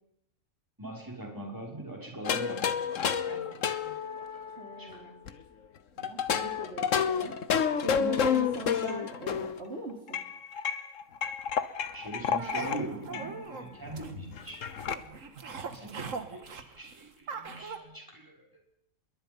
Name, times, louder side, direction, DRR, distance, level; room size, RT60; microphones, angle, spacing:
voice 1, 0.8-3.9 4.3-5.0 11.9-15.1 15.4-18.4, right 2 dB, 15° right, -1 dB, 5.9 m, -42 dB
sound 1, 2.3-5.3 6.0-9.6 10.1-12.8 13.1-13.3 13.6-13.7 13.9-15.0, left 7 dB, 65° left, 1.4 m, -30 dB
voice 2, 4.6-5.3 6.0-7.4 7.8-10.2, right 1 dB, 45° right, 1 dB, 3.2 m, -40 dB
sound 2, 12.4-17.8, right 5 dB, 65° right, 1.9 m, -41 dB
26.5 x 22.0 x 5.5 m, 0.75 s
omnidirectional pair, 1.5 m